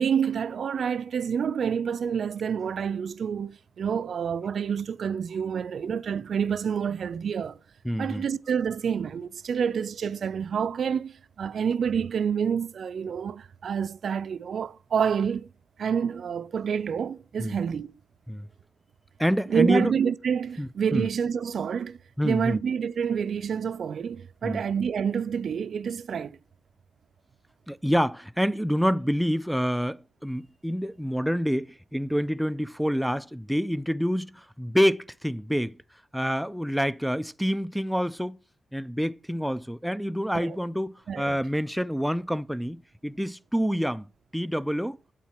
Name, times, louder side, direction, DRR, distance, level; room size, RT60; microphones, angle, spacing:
voice 1, 0.0-7.6 8.0-15.5 15.8-17.9 19.5-22.0 22.2-26.4 40.3-40.6 41.1-41.4, right 7 dB, 65° right, 0.4 m, -28 dB
voice 2, 7.8-8.2 17.4-17.6 18.3-18.5 19.2-19.9 20.6-21.1 22.2-22.6 24.4-24.6 27.7-35.8 36.1-38.4 38.7-44.1 44.3-45.0, equal, ahead, 0.4 m, -27 dB
8.3 x 4.3 x 7.2 m
cardioid pair, 105°, 0 cm